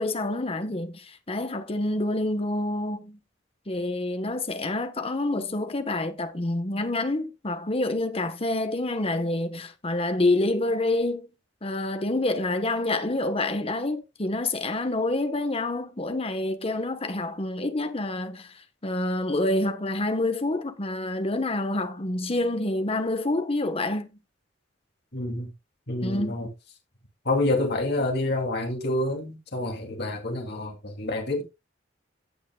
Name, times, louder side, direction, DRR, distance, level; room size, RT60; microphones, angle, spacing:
voice 1, 0.0-3.2 3.7-11.3 11.6-18.5 18.8-24.1 26.0-26.4, left 2 dB, 30° left, 1.1 m, -27 dB
voice 2, 25.1-25.5 25.9-26.5 27.2-31.4, left 2 dB, 60° left, 2.6 m, -28 dB
17.0 x 5.7 x 2.3 m
head